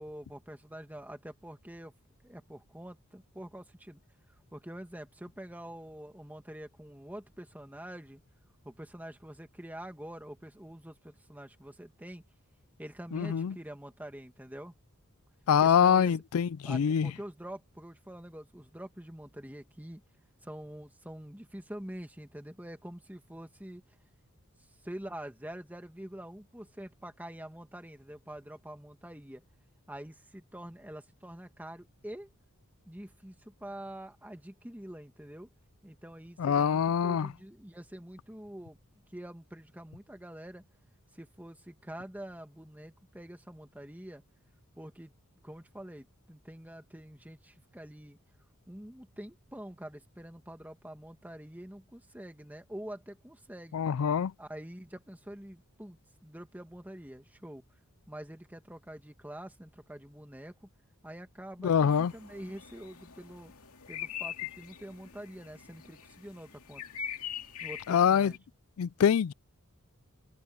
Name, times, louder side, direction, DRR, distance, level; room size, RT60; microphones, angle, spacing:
voice 1, 0.0-1.9 2.2-4.0 4.5-8.2 8.6-12.2 12.8-14.7 15.6-16.1 16.6-20.0 20.4-23.8 24.8-29.4 29.9-32.3 32.9-35.5 35.8-38.8 39.1-40.6 41.1-44.2 44.8-45.1 45.4-48.2 48.7-53.9 54.4-57.6 58.1-60.5 61.0-63.5 63.9-66.8 67.6-68.4, right 1 dB, 10° right, 1.9 m, -46 dB
voice 2, 13.1-13.5 15.5-17.1 36.4-37.3 53.7-54.3 61.6-62.1 67.9-68.3 68.8-69.3, left 7 dB, 70° left, 0.4 m, -25 dB
sound 1, 61.9-68.4, left 9 dB, 85° left, 2.4 m, -43 dB
open air
head